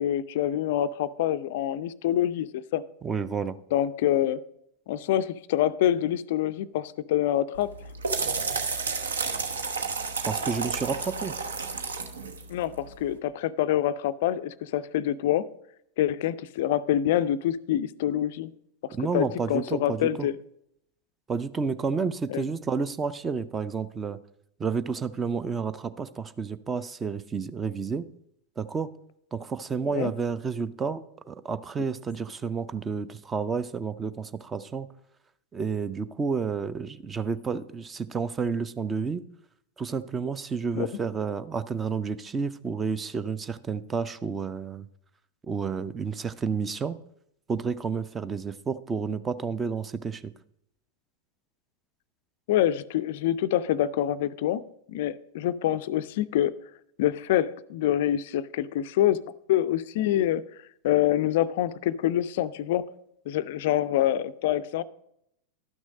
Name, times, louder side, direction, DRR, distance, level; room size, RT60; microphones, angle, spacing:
voice 1, 0.0-2.8 3.7-4.4 4.9-7.7 12.5-15.5 16.0-18.5 18.8-20.3 22.3-22.4 29.9-30.1 40.7-40.9 52.5-54.6 54.9-56.5 57.0-59.2 59.5-60.4 60.8-62.9 63.3-64.8, left 12 dB, 50° left, 16 dB, 0.3 m, -26 dB
voice 2, 3.0-3.6 10.3-11.4 18.9-20.3 21.3-24.2 24.6-28.1 28.6-28.9 29.3-34.9 35.5-39.2 39.8-44.9 45.5-47.0 47.5-50.3, right 5 dB, 20° right, 14 dB, 0.5 m, -30 dB
sound 1, 7.5-13.1, right 4 dB, 70° right, 0.9 m, -31 dB
12.0 x 6.2 x 5.0 m, 0.75 s
figure-of-eight pair, 90°, 0 cm